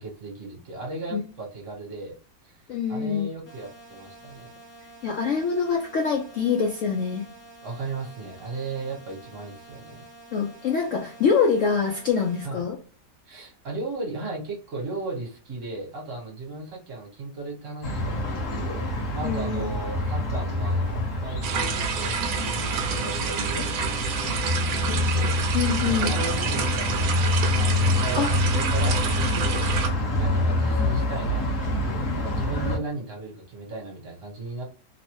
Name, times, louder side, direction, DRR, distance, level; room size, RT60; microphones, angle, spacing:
voice 1, 0.0-2.2 2.4-2.6 2.9-4.5 7.6-10.1 12.4-12.6 13.3-25.3 25.9-29.7 30.1-34.6, right 3 dB, 50° right, -1 dB, 1.3 m, -36 dB
voice 2, 2.7-3.3 5.0-7.2 10.3-12.8 19.2-19.7 24.9-25.1 25.5-26.1 28.2-28.3, left 6 dB, 75° left, 1 dB, 0.7 m, -25 dB
sound 1, 3.5-12.5, right 2 dB, 30° left, 0.4 m, -48 dB
sound 2, 17.8-32.8, left 1 dB, 55° left, 1.0 m, -26 dB
sound 3, 21.4-29.9, right 6 dB, 70° right, 0.9 m, -29 dB
3.0 x 2.1 x 2.9 m, 0.38 s
omnidirectional pair, 1.9 m